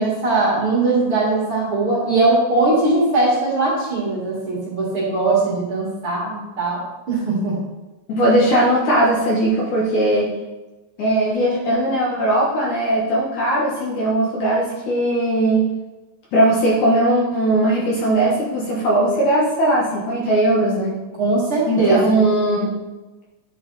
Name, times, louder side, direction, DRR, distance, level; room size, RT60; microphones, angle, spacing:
voice 1, 0.0-6.8 7.1-7.6 21.2-22.2, right 2 dB, 45° right, -6 dB, 2.3 m, -20 dB
voice 2, 8.1-10.3 11.0-15.7 16.3-21.0 21.7-22.7, right 1 dB, 60° left, -4 dB, 2.3 m, -19 dB
9.7 x 5.7 x 4.0 m, 1.1 s
omnidirectional pair, 4.4 m